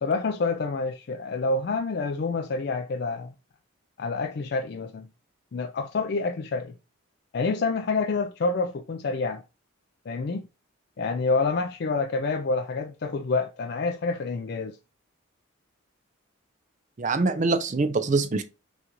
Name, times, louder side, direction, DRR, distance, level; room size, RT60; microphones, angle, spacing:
voice 1, 0.0-3.3 4.0-5.1 5.5-6.7 7.3-9.4 10.1-10.4 11.0-14.8, left 3 dB, 50° left, 0.3 m, -27 dB
voice 2, 17.0-18.4, right 3 dB, 35° right, 0.4 m, -24 dB
6.2 x 2.5 x 2.9 m
head